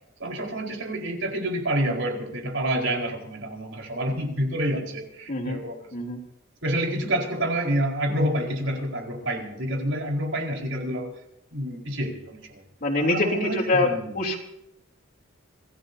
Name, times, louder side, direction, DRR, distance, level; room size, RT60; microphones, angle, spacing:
voice 1, 0.2-5.8 6.6-11.1 11.5-12.6 13.0-14.1, right 1 dB, 65° right, 0 dB, 4.6 m, -28 dB
voice 2, 5.3-5.6 5.9-6.2 12.8-14.4, left 2 dB, 45° left, 1 dB, 3.3 m, -24 dB
26.5 x 17.0 x 2.8 m, 0.81 s
head